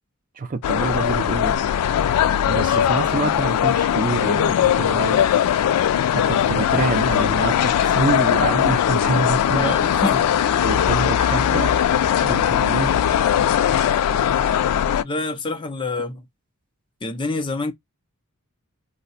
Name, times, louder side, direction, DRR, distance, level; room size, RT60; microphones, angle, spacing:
voice 1, 0.4-1.6 2.5-5.3 6.1-9.8 10.6-11.7 12.2-13.0, right 3 dB, 35° right, 0.5 m, -26 dB
sound 1, 0.6-15.0, left 9 dB, 85° left, 0.3 m, -20 dB
voice 2, 9.6-10.4 15.0-16.3 17.0-17.7, left 2 dB, 20° left, 0.5 m, -27 dB
2.7 x 2.1 x 3.9 m
head